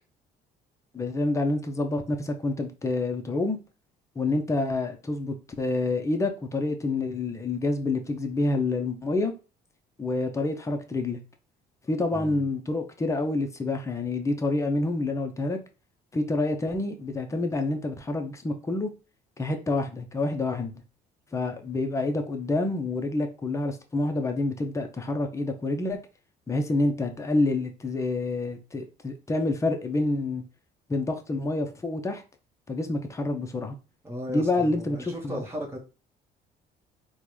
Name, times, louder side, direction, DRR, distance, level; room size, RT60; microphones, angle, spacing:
voice 1, 0.9-3.6 4.2-9.3 10.0-11.2 11.9-15.6 16.1-18.9 19.4-20.7 21.3-26.0 26.5-30.4 30.9-32.2 32.7-33.8 34.3-35.4, left 2 dB, 15° left, 0.6 m, -28 dB
voice 2, 12.1-12.4 34.0-35.8, equal, 15° right, 1.1 m, -36 dB
3.7 x 2.2 x 3.1 m
cardioid pair, 110°, 17 cm